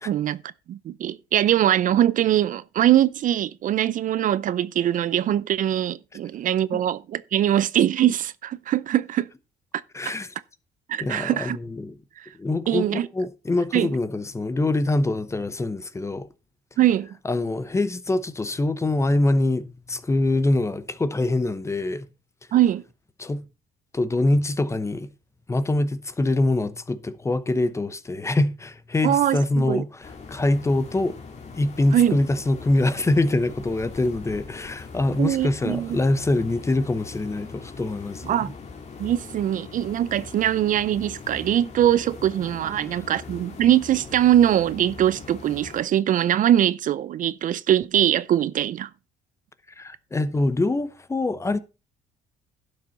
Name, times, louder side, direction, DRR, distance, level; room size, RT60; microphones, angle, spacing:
voice 1, 0.1-0.4 0.7-9.3 10.1-10.2 10.9-11.6 12.2-12.3 12.7-13.1 13.7-13.9 16.8-17.1 22.5-22.8 29.0-29.8 31.9-32.2 35.2-36.0 38.3-38.5 39.0-48.9, right 11 dB, 50° right, 0.5 m, -22 dB
voice 2, 9.9-10.3 11.0-12.0 12.4-16.3 17.2-22.1 23.2-23.4 23.9-25.1 25.5-31.2 31.5-38.4 49.8-51.6, left 2 dB, 15° left, 0.8 m, -24 dB
sound 1, 30.0-45.8, left 4 dB, 40° left, 2.1 m, -41 dB
11.5 x 6.4 x 4.1 m
cardioid pair, 110°, 17 cm